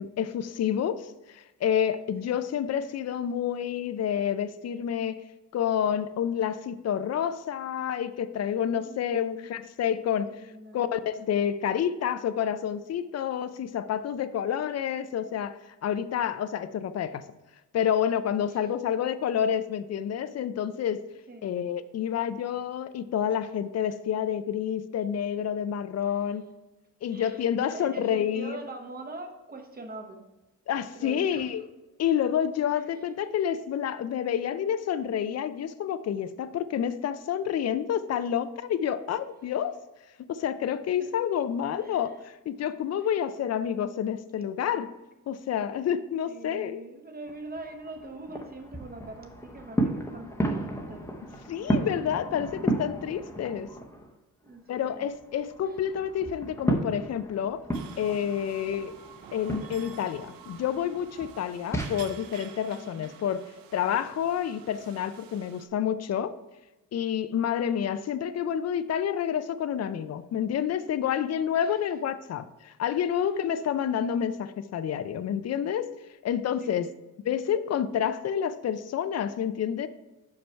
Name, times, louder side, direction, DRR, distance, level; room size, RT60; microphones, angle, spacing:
voice 1, 0.0-5.2 5.5-10.3 10.7-17.2 17.7-21.0 21.4-26.5 27.0-28.6 30.7-31.6 32.0-39.7 40.3-44.9 45.3-46.8 51.5-53.7 54.7-57.6 58.0-58.9 59.3-63.4 63.7-66.4 66.9-75.9 76.2-76.9 77.3-79.9, left 9 dB, 50° left, 13 dB, 0.4 m, -29 dB
voice 2, 8.8-9.5 10.3-10.8 18.5-18.7 21.3-21.5 26.0-26.4 27.1-30.3 30.9-31.5 32.7-33.0 39.4-39.5 41.0-41.2 41.7-42.2 43.0-43.2 46.3-51.1 51.6-51.9 54.4-55.1 55.6-55.8 62.7-63.1 71.6-71.9 73.2-73.3 76.6-76.9, right 2 dB, 25° right, 4 dB, 0.9 m, -44 dB
sound 1, 47.3-54.1 54.5-61.9, right 1 dB, 10° left, 0.7 m, -33 dB
sound 2, 57.7-65.7, right 8 dB, 85° right, 0.6 m, -49 dB
5.9 x 5.3 x 4.5 m, 1.1 s
cardioid pair, 115°, 34 cm